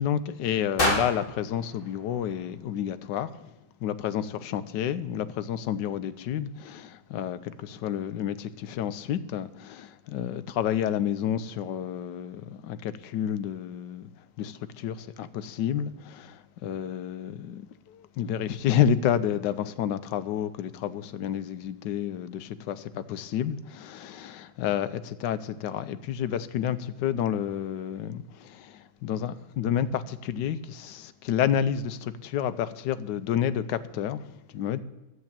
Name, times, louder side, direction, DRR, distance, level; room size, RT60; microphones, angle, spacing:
voice 1, 0.0-3.5 3.8-14.1 14.4-34.8, left 9 dB, 85° left, 1.3 m, -30 dB
sound 1, 0.8-2.9, left 1 dB, 30° left, 2.3 m, -30 dB
11.5 x 7.6 x 8.8 m
omnidirectional pair, 1.8 m